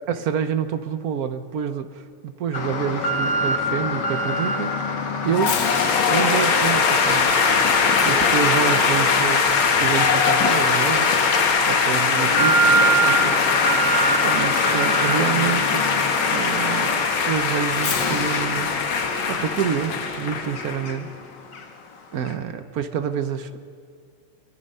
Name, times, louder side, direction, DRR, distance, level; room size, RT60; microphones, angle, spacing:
voice 1, 0.1-4.7 5.2-5.6 6.1-7.3 8.0-9.4 9.8-11.2 11.7-13.4 14.1-15.9 16.3-18.8 19.3-21.1 22.1-23.6, right 8 dB, 60° right, 10 dB, 1.0 m, -27 dB
Alarm, 2.5-21.2 21.5-21.6 22.3-22.4, equal, 55° left, 2.1 m, -26 dB
sound 1, 5.3-20.8, left 5 dB, 70° left, 2.3 m, -21 dB
24.5 x 23.0 x 5.5 m, 2.3 s
omnidirectional pair, 2.3 m